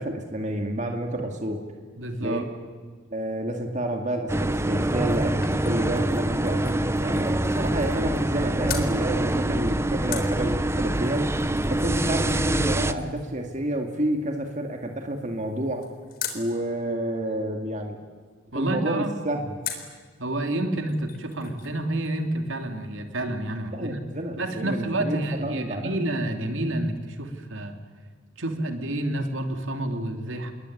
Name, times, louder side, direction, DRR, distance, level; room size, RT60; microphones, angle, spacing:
voice 1, 0.0-1.6 2.2-2.4 3.1-11.3 11.7-15.9 16.3-18.0 18.5-19.5 23.7-26.0, right 1 dB, 35° right, 3 dB, 2.3 m, -29 dB
voice 2, 2.0-2.4 18.5-19.1 20.2-24.0 24.4-27.8 28.4-30.5, right 1 dB, 65° right, 5 dB, 3.0 m, -29 dB
sound 1, 4.3-12.9, right 1 dB, 10° right, 0.9 m, -25 dB
sound 2, 4.7-8.4 8.7-8.9 10.1-16.5 19.6-20.0 20.5-20.6 20.8-21.8 22.0-22.1, left 8 dB, 45° left, 3.8 m, -41 dB
27.5 x 21.5 x 9.9 m, 1.5 s
head